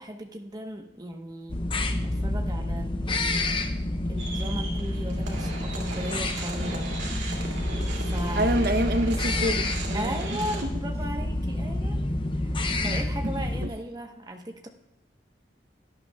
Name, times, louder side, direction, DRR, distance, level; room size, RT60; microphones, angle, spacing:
voice 1, 0.0-1.6 2.0-3.6 4.0-6.9 7.9-8.5 9.9-12.0 12.3-12.6 12.8-14.7, equal, 20° right, 3 dB, 1.0 m, -37 dB
sound 1, 1.5-13.7, left 1 dB, 25° left, 0.6 m, -29 dB
sound 2, 4.2-10.6, right 3 dB, 75° right, 2.5 m, -37 dB
voice 2, 8.4-10.2 10.6-10.7 12.8-13.0 13.6-13.7, right 1 dB, 55° right, 9 dB, 0.7 m, -27 dB
17.0 x 10.0 x 2.3 m, 0.94 s
head